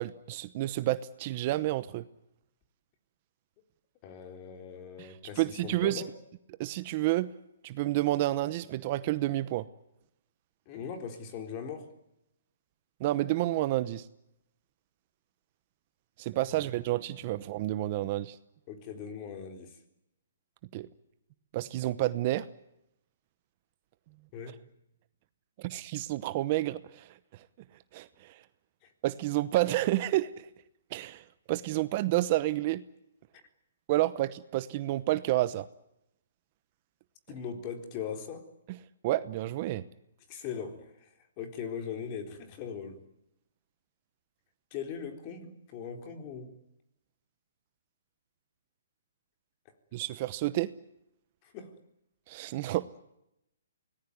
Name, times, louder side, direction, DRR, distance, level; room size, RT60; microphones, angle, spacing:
voice 1, 0.0-2.1 5.0-6.0 6.6-7.3 7.6-9.7 13.0-14.1 16.2-18.4 20.7-20.9 21.5-22.5 25.6-27.5 27.9-28.4 29.0-30.5 30.9-32.8 33.9-35.7 39.0-39.8 49.9-50.7 52.3-52.9, right 16 dB, 35° right, 15 dB, 0.9 m, -30 dB
voice 2, 4.0-6.1 10.7-11.9 16.5-16.6 18.7-19.8 24.3-24.6 28.8-28.9 37.3-38.5 40.3-41.1 41.4-43.0 44.7-46.6 51.4-51.7, left 7 dB, 30° left, 6 dB, 3.9 m, -40 dB
25.0 x 19.0 x 9.5 m, 0.84 s
hypercardioid pair, 160°, 0 cm